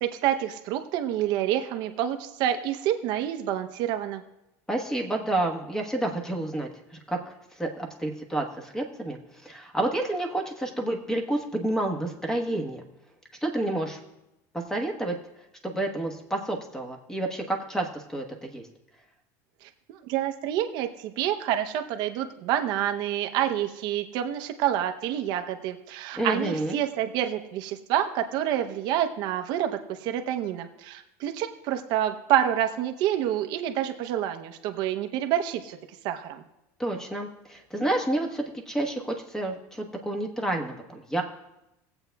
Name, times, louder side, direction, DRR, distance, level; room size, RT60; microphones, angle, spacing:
voice 1, 0.0-4.2 19.6-35.8 36.0-36.4, right 11 dB, 60° right, 6 dB, 0.7 m, -28 dB
voice 2, 4.7-12.8 13.4-14.0 14.5-15.2 15.6-18.7 26.2-26.8 36.8-41.2, right 1 dB, 5° left, 3 dB, 1.2 m, -29 dB
19.5 x 7.9 x 2.3 m, 0.93 s
supercardioid pair, 135°, 8 cm